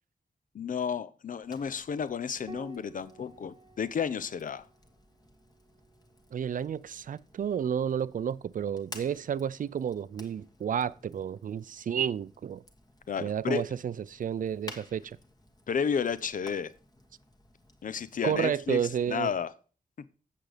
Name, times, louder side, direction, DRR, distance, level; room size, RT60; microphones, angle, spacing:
voice 1, 0.5-4.6 13.1-13.6 15.7-16.7 17.8-19.5, left 6 dB, 60° left, 0.7 m, -32 dB
Fire, 1.4-19.5, left 2 dB, 25° left, 1.4 m, -54 dB
Piano, 2.5-7.3 9.0-9.8, right 4 dB, 25° right, 0.7 m, -54 dB
voice 2, 6.3-12.6 13.2-15.2 18.2-19.3, right 8 dB, 65° right, 0.4 m, -31 dB
8.3 x 7.6 x 5.0 m
wide cardioid pair, 175°, 15 cm